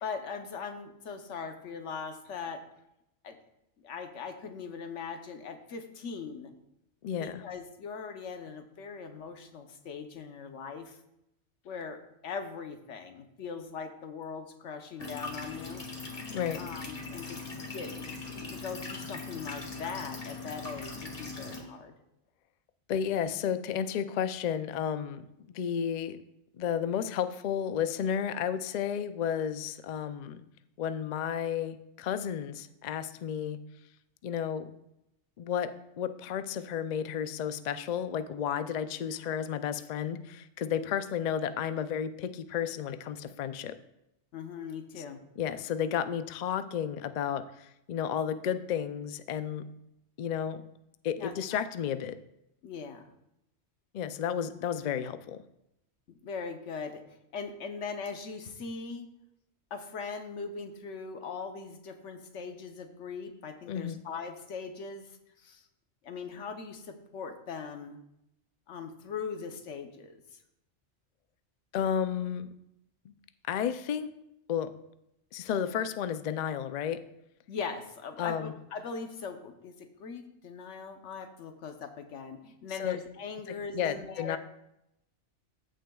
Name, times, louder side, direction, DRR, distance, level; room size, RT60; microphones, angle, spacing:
voice 1, 0.0-2.6 3.2-3.4 3.8-6.5 7.1-11.0 11.6-15.9 16.6-17.4 17.7-17.9 18.5-21.9 40.8-40.9 44.3-45.2 51.2-51.6 52.6-53.1 56.1-57.0 57.3-59.1 59.7-65.6 66.0-68.0 68.7-70.4 77.5-84.4, left 5 dB, 90° left, 6 dB, 1.2 m, -40 dB
voice 2, 7.0-7.4 16.3-16.6 22.9-25.2 25.5-26.2 26.6-30.4 30.8-33.6 34.2-34.7 35.4-35.7 36.0-43.8 45.4-49.6 50.2-50.6 51.0-52.2 53.9-55.4 63.7-64.0 71.7-72.5 73.0-73.1 73.5-74.1 74.5-74.7 75.3-77.0 78.2-78.5 82.8-83.0 83.5-84.4, left 8 dB, 60° left, 11 dB, 0.4 m, -32 dB
sound 1, 15.0-21.6, left 3 dB, 30° left, 1.4 m, -40 dB
14.5 x 6.4 x 2.3 m, 0.84 s
omnidirectional pair, 1.2 m